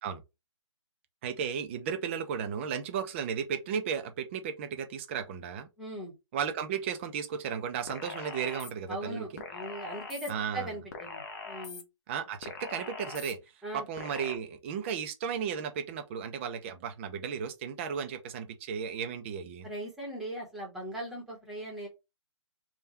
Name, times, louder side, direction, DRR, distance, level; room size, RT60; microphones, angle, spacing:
voice 1, 1.2-5.7 6.3-9.4 10.3-10.7 12.1-13.4 13.7-19.7, right 7 dB, 25° right, 0.5 m, -34 dB
voice 2, 5.8-6.1 8.9-11.8 13.6-13.8 19.6-21.9, right 1 dB, ahead, 1.1 m, -39 dB
sound 1, 7.9-8.7 9.4-10.3 10.9-11.8 12.4-13.3 14.0-14.4, left 5 dB, 35° left, 0.7 m, -42 dB
3.5 x 2.3 x 4.1 m
hypercardioid pair, 155°, 16 cm